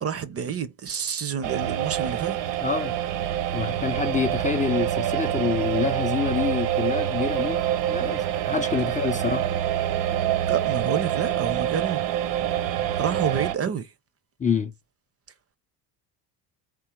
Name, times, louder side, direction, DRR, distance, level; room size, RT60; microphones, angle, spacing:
voice 1, 0.0-2.4 10.5-12.3 13.0-13.9, right 7 dB, 30° right, 0.6 m, -29 dB
sound 1, 1.4-13.5, right 11 dB, 60° right, 0.8 m, -26 dB
voice 2, 2.6-3.0 3.5-7.6 7.9-9.5 14.4-14.7, left 6 dB, 15° left, 0.4 m, -27 dB
3.8 x 2.7 x 4.5 m
supercardioid pair, 80°, 47 cm